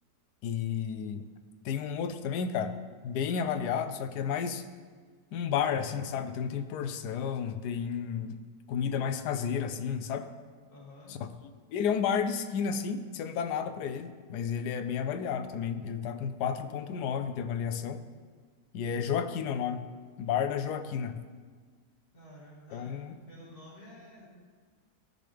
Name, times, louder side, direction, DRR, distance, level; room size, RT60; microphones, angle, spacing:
voice 1, 0.4-1.2 1.6-2.8 3.0-4.6 5.3-8.4 8.7-10.3 11.7-18.0 18.7-19.9 20.2-21.2 22.7-23.2, left 7 dB, 80° left, 9 dB, 1.2 m, -32 dB
voice 2, 10.7-11.2 22.1-24.3, left 1 dB, 35° left, -5 dB, 2.1 m, -51 dB
14.5 x 5.2 x 3.4 m, 1.5 s
omnidirectional pair, 1.7 m